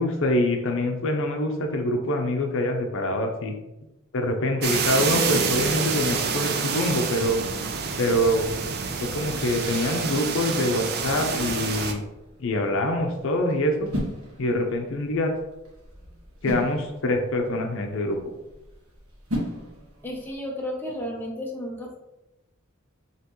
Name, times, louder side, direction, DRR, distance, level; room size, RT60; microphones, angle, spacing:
voice 1, 0.0-3.6 4.1-7.4 8.0-8.4 9.1-12.0 12.4-13.9 14.4-15.3 16.4-18.2, left 1 dB, 65° left, 3 dB, 0.6 m, -25 dB
sound 1, 4.6-11.9, right 5 dB, 50° right, 0.5 m, -27 dB
sound 2, 11.1-20.3, equal, 70° right, 1.4 m, -38 dB
voice 2, 20.0-22.0, left 1 dB, 10° left, -1 dB, 0.7 m, -33 dB
5.6 x 3.0 x 3.0 m, 0.97 s
head